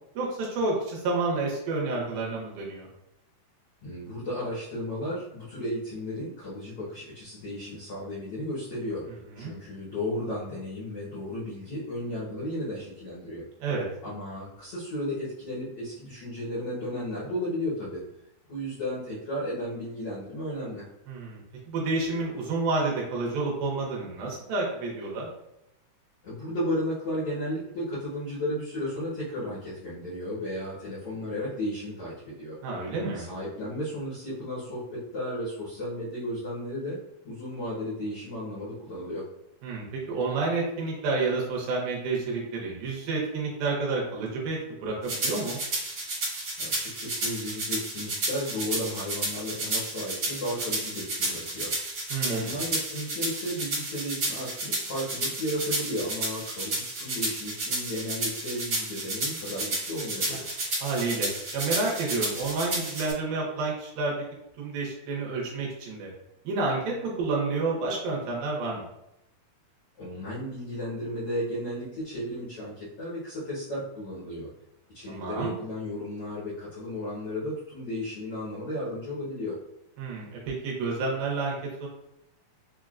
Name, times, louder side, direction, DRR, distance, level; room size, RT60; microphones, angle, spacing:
voice 1, 0.2-2.9 9.4-9.5 13.6-13.9 21.1-21.4 21.7-25.3 32.6-33.3 39.6-45.6 52.1-52.5 60.3-60.4 60.8-64.1 64.6-66.1 66.4-68.9 75.1-75.5 80.0-81.6 81.8-81.9, right 3 dB, 75° right, -3 dB, 2.4 m, -29 dB
voice 2, 3.8-9.0 9.3-13.4 14.0-18.0 18.5-20.8 26.2-32.6 33.1-37.0 37.2-39.2 46.6-51.7 52.3-60.5 70.0-74.5 74.9-79.6, left 1 dB, 90° left, -9 dB, 1.3 m, -34 dB
sound 1, 45.1-63.1, right 2 dB, 50° right, 1.3 m, -32 dB
6.2 x 2.1 x 2.4 m, 0.87 s
omnidirectional pair, 4.5 m